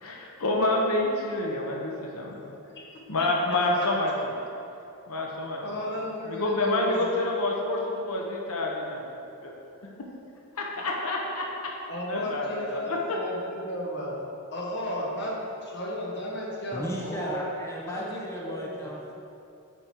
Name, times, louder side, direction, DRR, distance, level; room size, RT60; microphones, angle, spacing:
voice 1, 0.0-2.5 3.1-4.3 5.1-5.6 6.3-9.0 9.4-9.5 10.8-11.4 12.1-13.2, left 2 dB, 75° left, -1 dB, 1.0 m, -28 dB
voice 2, 5.6-7.2 11.9-14.2 14.5-17.4 17.8-18.2 18.5-18.9, equal, 50° left, -3 dB, 1.6 m, -34 dB
voice 3, 16.7-19.1, equal, 10° left, -4 dB, 0.7 m, -35 dB
9.2 x 5.2 x 4.6 m, 2.7 s
head